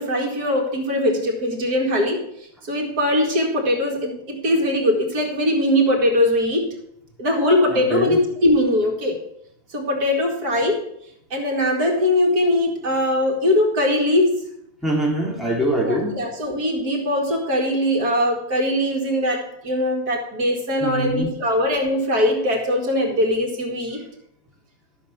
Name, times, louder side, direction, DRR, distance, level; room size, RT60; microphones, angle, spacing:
voice 1, 0.0-2.2 2.6-6.7 7.2-9.1 9.7-10.8 11.3-14.5 15.8-24.0, left 1 dB, 80° right, 1 dB, 2.7 m, -21 dB
voice 2, 7.7-8.2 14.8-16.2 20.8-21.3, right 1 dB, ahead, -3 dB, 3.2 m, -23 dB
13.0 x 6.4 x 7.1 m, 0.72 s
omnidirectional pair, 1.6 m